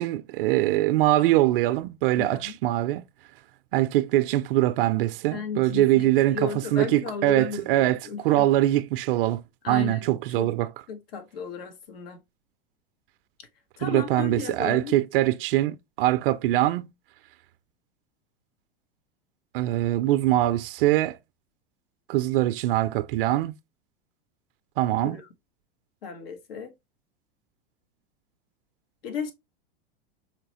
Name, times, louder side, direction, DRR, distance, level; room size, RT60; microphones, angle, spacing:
voice 1, 0.0-3.0 3.7-8.0 8.2-9.4 9.7-10.7 13.8-16.9 19.5-21.2 22.1-23.5 24.8-25.2, right 15 dB, 65° right, 0.5 m, -23 dB
voice 2, 2.1-2.6 5.3-8.5 9.6-10.5 10.9-12.2 13.8-14.9 25.0-25.3 26.0-26.7 29.0-29.3, left 6 dB, 80° left, 1.2 m, -35 dB
4.9 x 3.2 x 2.9 m
hypercardioid pair, 105°, 29 cm